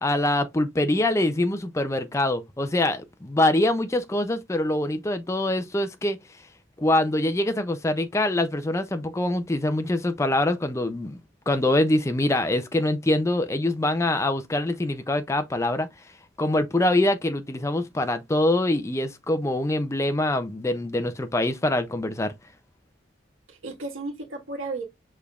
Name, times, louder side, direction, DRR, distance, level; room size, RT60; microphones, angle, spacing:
voice 1, 0.0-6.2 6.8-11.2 11.5-15.9 16.4-22.3, left 1 dB, 15° left, 0.4 m, -24 dB
voice 2, 0.8-1.3 23.5-24.8, right 3 dB, 80° right, 1.7 m, -35 dB
6.5 x 3.4 x 2.4 m
head